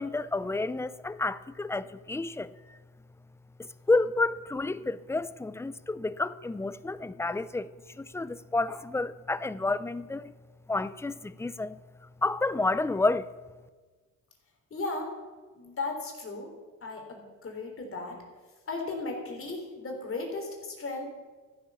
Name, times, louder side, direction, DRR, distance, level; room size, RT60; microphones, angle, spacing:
voice 1, 0.0-2.8 3.6-10.3 10.7-11.8 12.2-13.3, left 2 dB, 10° left, 0.5 m, -30 dB
voice 2, 14.7-15.2 15.6-16.5 16.8-18.2 18.7-21.0, left 3 dB, 40° left, 3.7 m, -36 dB
14.5 x 9.9 x 7.1 m
cardioid pair, 115°, 33 cm